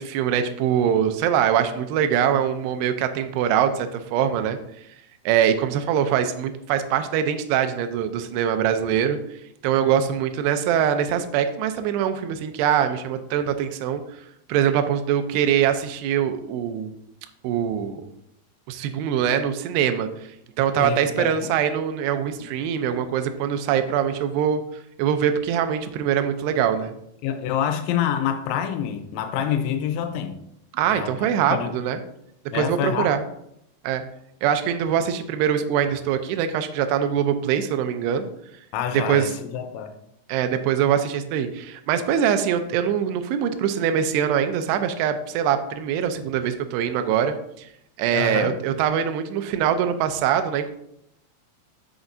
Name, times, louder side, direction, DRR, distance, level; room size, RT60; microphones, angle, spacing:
voice 1, 0.0-4.6 5.3-9.2 9.6-14.0 14.5-16.9 17.4-18.0 18.7-20.1 20.6-24.6 25.0-26.9 30.7-32.0 32.5-33.2 33.8-34.0 34.4-38.2 39.1-39.3 40.3-47.7 48.0-50.7, right 9 dB, 80° right, 2.5 m, -23 dB
voice 2, 20.8-21.5 22.4-22.5 27.2-30.4 30.9-31.7 32.5-33.1 38.7-39.9 48.1-48.5, left 9 dB, 90° left, 3.2 m, -27 dB
8.2 x 7.0 x 2.6 m
omnidirectional pair, 5.3 m